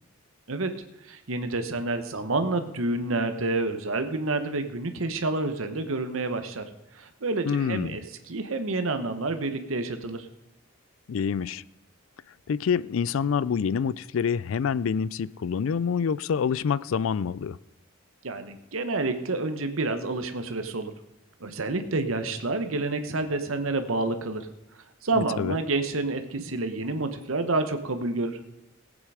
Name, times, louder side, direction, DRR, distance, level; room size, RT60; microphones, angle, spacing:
voice 1, 0.5-6.6 6.9-10.3 18.2-20.9 21.4-24.5 24.7-28.4, right 2 dB, 80° right, 1.1 m, -29 dB
voice 2, 7.5-8.0 11.1-11.6 12.5-17.6 25.1-25.6, left 6 dB, 75° left, 0.4 m, -27 dB
16.0 x 8.7 x 4.9 m
head